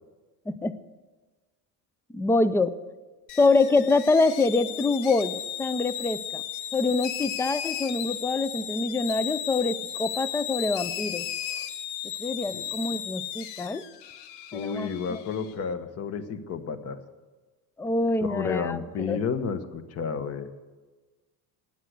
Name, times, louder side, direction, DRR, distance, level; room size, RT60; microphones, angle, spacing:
voice 1, 2.1-2.8 3.4-6.4 6.7-11.3 12.2-13.8 14.5-15.2 17.8-19.2, left 3 dB, 5° left, 15 dB, 0.4 m, -25 dB
sound 1, 3.3-15.5, left 11 dB, 90° left, 1.0 m, -35 dB
voice 2, 14.5-17.0 18.2-20.5, left 6 dB, 40° left, 10 dB, 1.2 m, -31 dB
16.0 x 10.5 x 8.1 m, 1.3 s
cardioid pair, 140°, 38 cm